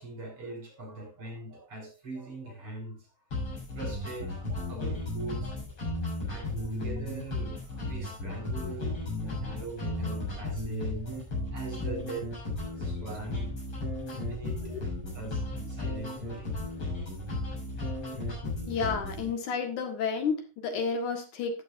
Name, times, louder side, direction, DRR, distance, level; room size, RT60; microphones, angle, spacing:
voice 1, 0.0-3.1 3.4-5.6 6.3-12.3 12.6-13.6 14.1-16.6 16.9-17.1, right 2 dB, 40° right, 0 dB, 5.5 m, -42 dB
sound 1, 3.3-19.3, left 2 dB, 45° left, 8.2 m, -35 dB
voice 2, 18.7-21.6, left 5 dB, 70° left, 5 dB, 3.0 m, -31 dB
13.5 x 11.5 x 2.6 m, 0.30 s
omnidirectional pair, 3.7 m